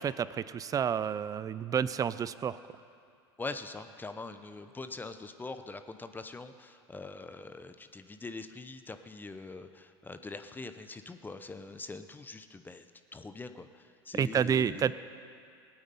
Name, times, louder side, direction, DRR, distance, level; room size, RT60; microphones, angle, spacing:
voice 1, 0.0-2.6 14.2-14.9, right 8 dB, 25° right, 16 dB, 0.4 m, -29 dB
voice 2, 3.4-12.9 13.1-14.9, left 3 dB, 15° left, 9 dB, 0.7 m, -43 dB
19.0 x 8.8 x 5.5 m, 2.3 s
hypercardioid pair, 90°, 14 cm